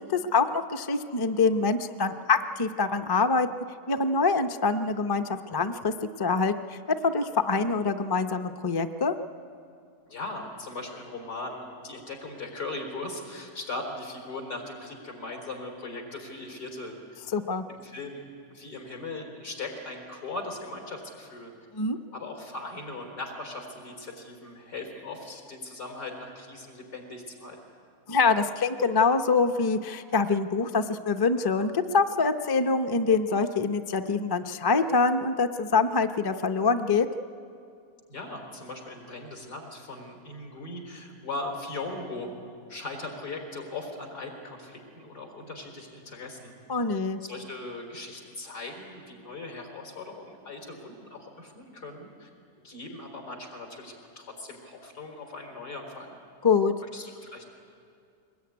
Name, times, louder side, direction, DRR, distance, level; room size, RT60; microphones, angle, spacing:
voice 1, 0.0-3.5 3.9-5.9 6.2-9.1 17.3-17.6 21.7-22.0 28.1-37.1 46.7-47.2 56.4-56.7, left 4 dB, 35° left, 7 dB, 0.3 m, -25 dB
voice 2, 10.1-16.9 17.7-21.5 22.1-27.6 38.1-42.3 42.7-46.5 47.2-52.3 52.6-56.2 56.8-57.5, left 2 dB, 85° left, 2 dB, 4.6 m, -39 dB
22.5 x 20.0 x 9.5 m, 2.4 s
omnidirectional pair, 1.7 m